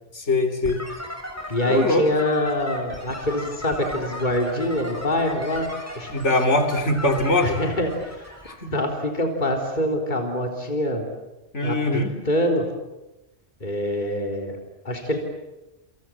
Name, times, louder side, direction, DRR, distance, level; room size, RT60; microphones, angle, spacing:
voice 1, 0.1-0.8 1.7-2.1 6.1-7.6 8.4-8.7 11.5-12.1, left 2 dB, 75° left, 5 dB, 3.6 m, -22 dB
sound 1, 0.6-8.5, equal, 10° left, 6.5 m, -36 dB
voice 2, 1.5-5.7 6.0-6.1 7.4-8.2 8.7-11.1 11.6-12.7 13.6-14.6 14.8-15.2, left 1 dB, 40° left, 2 dB, 3.8 m, -25 dB
29.0 x 27.5 x 7.5 m, 1.0 s
omnidirectional pair, 1.2 m